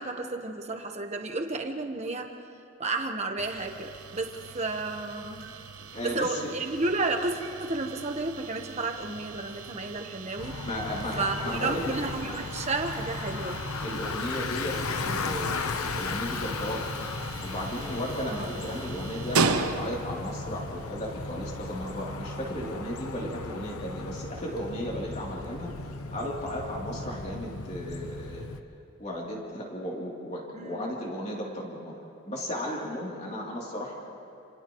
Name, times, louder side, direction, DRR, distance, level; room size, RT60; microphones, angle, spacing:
voice 1, 0.0-2.3 2.8-5.4 6.1-10.6 11.2-13.6 18.3-18.5 30.5-31.0, right 3 dB, 30° right, 3 dB, 1.3 m, -32 dB
sound 1, 3.4-20.2, right 4 dB, 90° right, 1.1 m, -37 dB
voice 2, 5.8-6.5 10.6-11.9 13.8-16.9 17.4-25.7 26.1-28.5 29.0-31.9 32.3-33.9, equal, 30° left, -3 dB, 3.3 m, -35 dB
Bicycle, 10.4-28.6, left 3 dB, 90° left, 0.9 m, -36 dB
29.0 x 28.5 x 3.2 m, 2.7 s
head